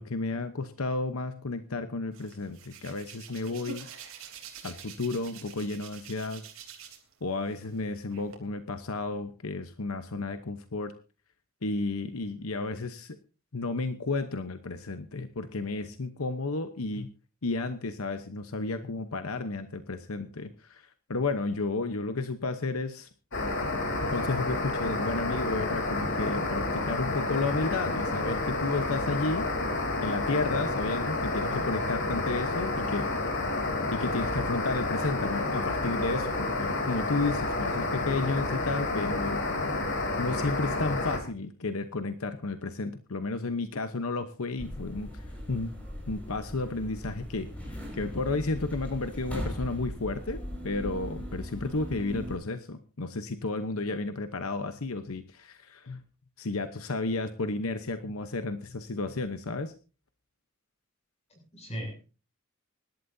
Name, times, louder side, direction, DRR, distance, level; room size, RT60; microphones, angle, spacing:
voice 1, 0.0-3.9 4.6-6.4 7.2-10.9 11.6-13.1 13.5-17.1 17.4-23.1 24.0-29.5 30.0-33.1 33.9-39.4 40.2-45.7 46.1-50.4 50.6-56.0 56.4-59.7, left 3 dB, 80° left, 9 dB, 1.0 m, -32 dB
Hands, 2.1-7.1 7.5-8.4, right 6 dB, 75° right, 3.4 m, -46 dB
sound 1, 23.3-41.2, left 2 dB, 65° left, 3.1 m, -30 dB
sound 2, 44.6-52.4, equal, 5° left, 5.4 m, -39 dB
voice 2, 61.3-62.1, equal, 30° left, 2 dB, 7.3 m, -39 dB
25.0 x 12.0 x 2.7 m, 0.34 s
head